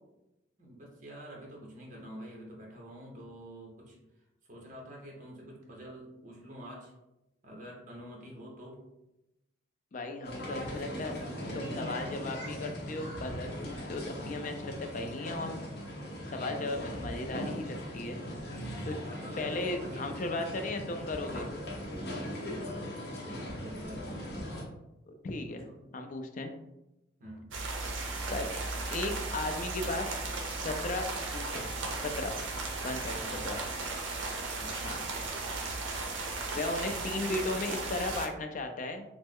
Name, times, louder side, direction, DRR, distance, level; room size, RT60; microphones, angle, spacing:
voice 1, 0.6-4.0 4.5-6.9 7.4-8.8 10.4-11.7 16.5-16.7 19.0-20.2 22.1-24.4 25.5-25.7 27.2-27.5 33.1-33.5 34.6-35.1, equal, 40° right, -2 dB, 0.8 m, -47 dB
voice 2, 9.9-11.2 11.5-15.6 16.3-18.2 18.8-19.0 19.4-21.5 25.1-25.7 25.9-26.5 28.3-28.5 28.9-30.1 30.6-31.1 31.3-31.7 32.0-32.4 32.8-33.6 34.8-35.0 36.5-39.0, left 2 dB, 40° left, 5 dB, 0.3 m, -36 dB
sound 1, 10.2-24.6, equal, 55° left, 0.7 m, -39 dB
sound 2, 27.5-38.3, right 3 dB, 75° right, 0.5 m, -36 dB
3.1 x 2.0 x 3.5 m, 0.92 s
head